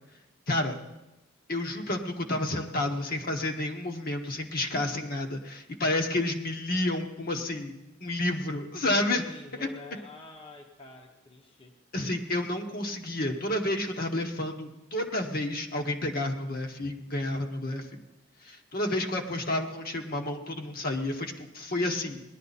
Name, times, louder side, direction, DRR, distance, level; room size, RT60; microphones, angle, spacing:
voice 1, 1.5-7.7 8.0-9.2 9.5-9.7 11.9-17.9 18.4-22.2, left 1 dB, 50° left, 3 dB, 1.3 m, -30 dB
voice 2, 9.1-11.7, left 2 dB, 25° left, 1 dB, 1.0 m, -48 dB
19.0 x 11.5 x 4.2 m, 0.98 s
head